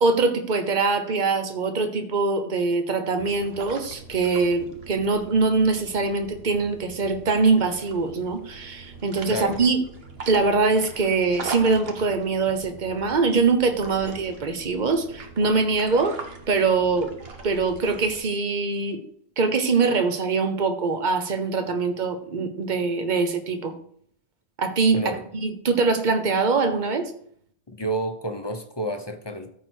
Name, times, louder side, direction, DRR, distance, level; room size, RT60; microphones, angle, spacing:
voice 1, 0.0-9.8 10.3-16.2 16.5-17.1 17.4-19.0 19.4-23.7 24.6-25.0 25.4-27.1, right 4 dB, 45° right, 8 dB, 1.1 m, -23 dB
sound 1, 3.2-18.2, right 3 dB, 65° right, 1.4 m, -41 dB
voice 2, 27.7-29.5, right 1 dB, 25° left, 6 dB, 0.9 m, -30 dB
14.0 x 4.7 x 4.6 m, 0.64 s
omnidirectional pair, 1.1 m